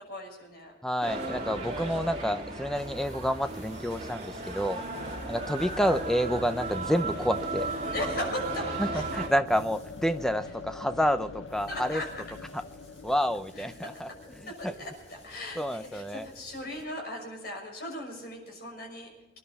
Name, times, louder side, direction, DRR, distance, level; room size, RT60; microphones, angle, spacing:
voice 1, 0.0-0.7 4.7-5.1 7.8-9.0 11.7-12.2 13.5-13.7 14.5-19.1, left 1 dB, 55° left, 2 dB, 6.1 m, -38 dB
voice 2, 0.8-4.8 5.3-7.7 8.8-12.0 13.0-14.1 14.4-14.7 15.6-16.2, equal, 5° left, 9 dB, 0.7 m, -29 dB
sound 1, 1.0-9.3, right 2 dB, 35° right, 3.1 m, -35 dB
sound 2, 2.7-16.8, left 1 dB, 35° left, 6.9 m, -55 dB
sound 3, 4.9-16.7, left 4 dB, 90° left, 0.7 m, -45 dB
26.0 x 11.0 x 4.2 m, 1.0 s
head